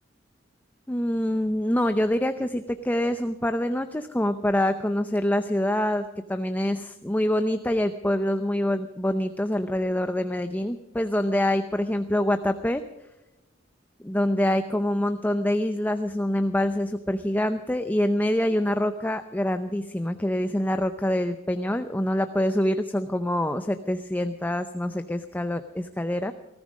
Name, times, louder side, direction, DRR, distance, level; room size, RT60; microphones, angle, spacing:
voice 1, 0.9-12.8 14.0-26.3, left 1 dB, 10° left, 9 dB, 0.6 m, -25 dB
20.0 x 14.0 x 5.2 m, 0.99 s
head